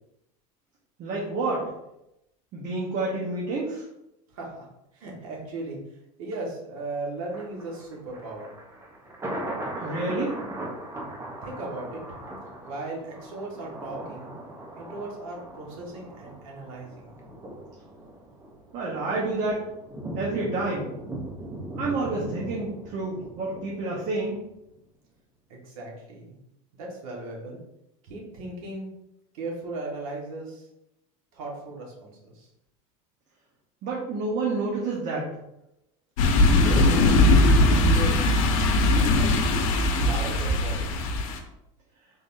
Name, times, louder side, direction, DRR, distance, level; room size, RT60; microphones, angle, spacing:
voice 1, 1.0-1.7 2.5-3.8 9.8-10.4 18.7-19.6 20.1-20.9 21.8-24.4 33.8-35.3, right 3 dB, 45° right, -4 dB, 1.0 m, -29 dB
voice 2, 4.3-4.6 4.9-5.8 6.2-8.5 11.4-12.0 12.6-14.3 14.8-17.2 25.5-26.3 26.8-27.6 28.0-28.9 29.3-30.6 31.3-32.5 36.6-37.2 37.6-38.3 38.9-40.9, right 2 dB, 80° right, -2 dB, 1.5 m, -37 dB
Thunder, 7.3-24.4 24.8-24.9, right 1 dB, 15° right, 0.7 m, -39 dB
sound 1, 36.2-41.4, left 2 dB, 80° left, 0.7 m, -20 dB
3.9 x 3.7 x 2.6 m, 0.86 s
supercardioid pair, 130°, 17 cm